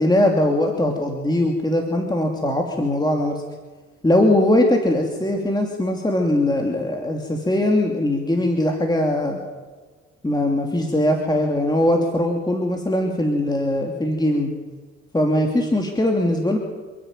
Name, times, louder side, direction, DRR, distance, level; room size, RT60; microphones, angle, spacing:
voice 1, 0.0-3.4 4.0-9.4 10.2-14.5 15.1-16.6, left 1 dB, 15° left, 2 dB, 2.9 m, -20 dB
28.5 x 10.5 x 9.2 m, 1.4 s
cardioid pair, 90°, 30 cm